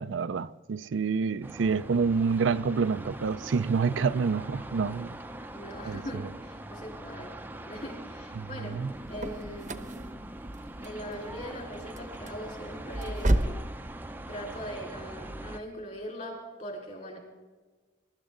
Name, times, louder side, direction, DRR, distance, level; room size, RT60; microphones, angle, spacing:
voice 1, 0.0-5.2 5.8-6.0 8.3-8.9, right 5 dB, 70° right, 0.4 m, -28 dB
sound 1, 1.4-15.6, right 1 dB, 10° right, 0.6 m, -42 dB
voice 2, 5.5-7.3 7.7-8.8 9.1-10.0 10.8-13.6 14.3-17.2, equal, 40° left, 4.1 m, -41 dB
sound 2, 8.7-13.7, right 1 dB, 40° right, 0.8 m, -32 dB
22.5 x 12.5 x 3.8 m
head